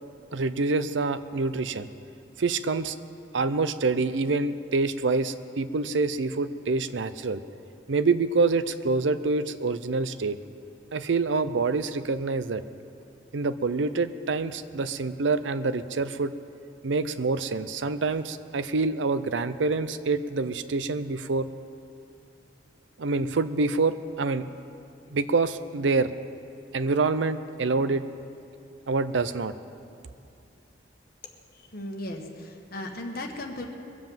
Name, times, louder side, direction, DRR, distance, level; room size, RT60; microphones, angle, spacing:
voice 1, 0.3-1.9 2.4-3.0 3.3-7.4 7.9-10.4 10.9-12.6 13.3-16.3 16.8-21.5 23.0-24.4 25.1-26.1 26.7-28.0 28.9-29.5, right 3 dB, 90° right, 12 dB, 0.6 m, -26 dB
voice 2, 31.5-33.6, left 1 dB, 55° left, 2 dB, 1.6 m, -36 dB
22.0 x 7.7 x 7.3 m, 2.5 s
head